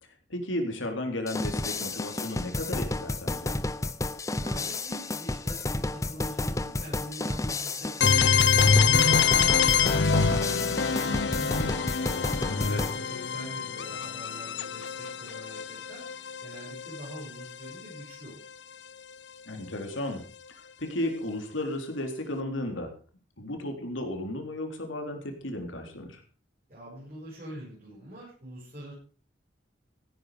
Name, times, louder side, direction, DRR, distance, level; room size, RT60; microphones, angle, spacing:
voice 1, 0.3-3.6 12.5-12.9 19.5-20.2 20.8-22.9 23.4-26.2, left 1 dB, 85° left, 4 dB, 3.7 m, -34 dB
sound 1, 1.3-13.0, left 2 dB, 15° left, 0.5 m, -31 dB
voice 2, 4.3-11.8 12.4-16.1 16.4-18.4 26.7-28.9, right 1 dB, 40° right, -7 dB, 7.0 m, -44 dB
sound 2, 8.0-17.7, left 6 dB, 65° left, 0.7 m, -25 dB
16.0 x 10.0 x 5.1 m, 0.39 s
head